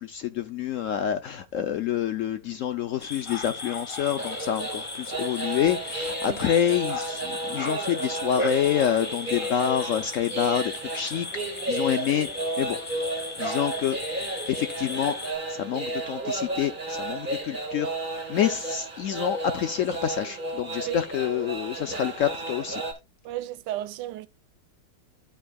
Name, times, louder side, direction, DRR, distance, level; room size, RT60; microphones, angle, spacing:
voice 1, 0.0-11.3 11.7-12.3 12.6-12.8 13.4-14.0 14.5-22.8, left 9 dB, 70° left, 0.7 m, -27 dB
sound 1, 3.0-15.3, left 2 dB, 25° left, 0.7 m, -37 dB
sound 2, 4.2-22.9, right 2 dB, 30° right, 1.8 m, -33 dB
voice 2, 23.2-24.3, right 13 dB, 85° right, 1.2 m, -33 dB
13.0 x 4.8 x 2.3 m
omnidirectional pair, 1.8 m